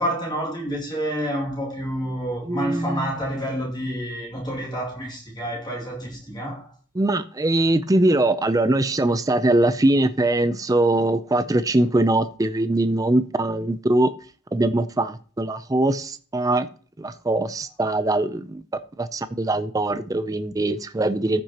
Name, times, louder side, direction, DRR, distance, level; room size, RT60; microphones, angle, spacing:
voice 1, 0.0-6.7, equal, 20° left, 2.3 m, -28 dB
voice 2, 2.5-3.1 7.0-14.1 14.5-16.7 17.0-18.6 19.0-21.4, right 2 dB, 15° right, 0.4 m, -22 dB
14.5 x 6.1 x 2.9 m
head